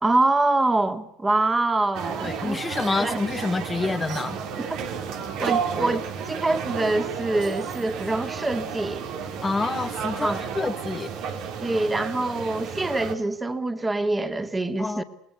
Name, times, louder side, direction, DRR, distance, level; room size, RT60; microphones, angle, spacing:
voice 1, 0.0-2.6 3.0-3.2 4.6-4.7 5.4-9.1 10.2-10.5 11.6-15.0, right 2 dB, 15° right, 2.5 m, -25 dB
sound 1, 1.9-13.1, right 7 dB, 70° right, 4.2 m, -32 dB
voice 2, 2.2-4.4 9.4-11.1 14.8-15.0, left 3 dB, 15° left, 1.4 m, -27 dB
28.0 x 20.0 x 8.4 m
supercardioid pair, 100°, 0 cm